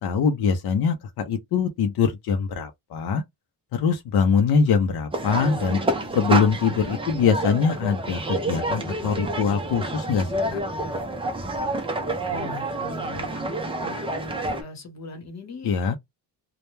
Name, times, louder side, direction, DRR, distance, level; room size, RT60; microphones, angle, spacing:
voice 1, 0.0-3.2 3.7-5.8 6.1-10.6 15.6-16.0, left 6 dB, 70° left, 0.6 m, -23 dB
sound 1, 5.1-14.6, right 2 dB, 15° right, 0.4 m, -28 dB
voice 2, 12.3-14.1 14.6-16.0, left 2 dB, 40° left, 1.0 m, -41 dB
2.2 x 2.1 x 3.0 m
wide cardioid pair, 160°, 40 cm